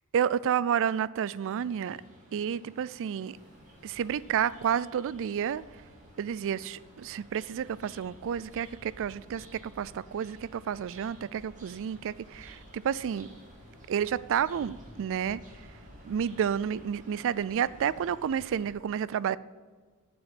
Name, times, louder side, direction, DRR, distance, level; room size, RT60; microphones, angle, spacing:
voice 1, 0.1-2.0 2.3-3.4 3.8-5.6 6.2-13.3 13.9-15.4 16.0-19.4, right 8 dB, 60° right, 19 dB, 0.3 m, -30 dB
sound 1, 1.5-18.7, right 1 dB, 35° right, 2.3 m, -55 dB
Ocean, 3.3-18.7, equal, 35° left, 1.7 m, -56 dB
7.2 x 6.2 x 7.6 m, 1.5 s
head